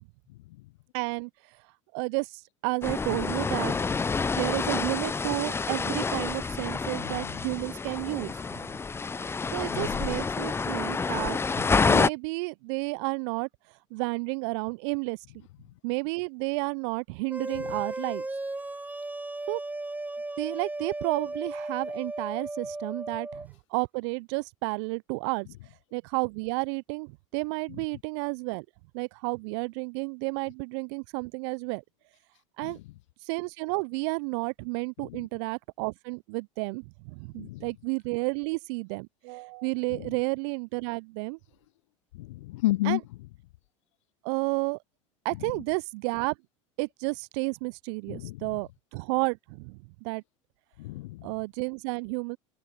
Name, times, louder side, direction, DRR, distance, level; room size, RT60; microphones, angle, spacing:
voice 1, 0.9-1.3 1.9-3.7 4.3-8.7 9.5-13.5 13.9-15.2 15.8-18.2 19.5-19.6 20.4-25.5 25.9-28.7 28.9-31.8 32.6-32.8 33.3-41.4 42.8-43.0 44.2-44.8 45.2-46.3 46.8-50.2 51.2-52.4, right 30 dB, 60° right, 0.6 m, -31 dB
sound 1, 2.8-12.1, left 4 dB, 15° left, 0.6 m, -28 dB
voice 2, 7.0-7.3 9.7-10.0 32.6-32.7 37.4-37.6 42.2-43.0 48.1-48.4 50.8-51.3, left 17 dB, 70° left, 0.7 m, -31 dB
sound 2, 17.3-23.5, right 2 dB, 10° right, 5.0 m, -35 dB
open air
hypercardioid pair, 75°, 16 cm